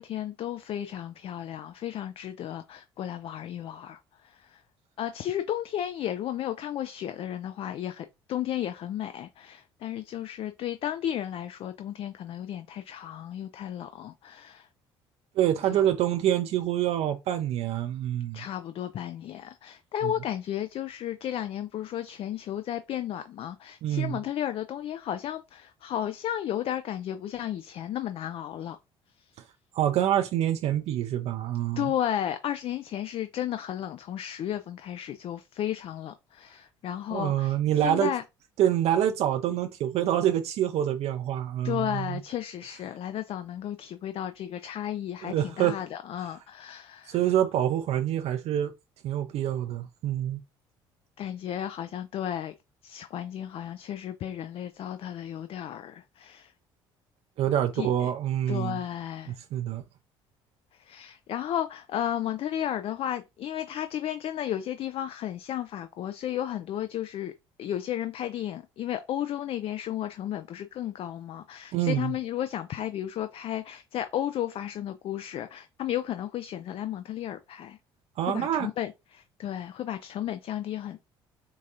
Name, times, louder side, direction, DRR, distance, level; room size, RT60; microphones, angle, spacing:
voice 1, 0.0-4.6 5.0-14.7 15.7-15.8 18.3-28.8 29.2-29.3 31.8-37.6 37.8-38.2 41.6-47.2 51.2-52.5 52.8-56.5 57.7-58.1 58.5-59.4 60.7-67.3 67.6-77.8 78.3-81.0, left 11 dB, 50° left, 0.4 m, -33 dB
voice 2, 15.4-18.4 20.0-20.1 23.8-24.2 29.7-31.9 37.1-38.1 38.6-42.2 45.2-45.8 47.1-48.7 49.0-50.4 57.4-58.8 59.5-59.8 71.7-72.1 78.2-78.7, right 11 dB, 60° right, 0.4 m, -26 dB
4.6 x 2.4 x 2.7 m
hypercardioid pair, 60°, 12 cm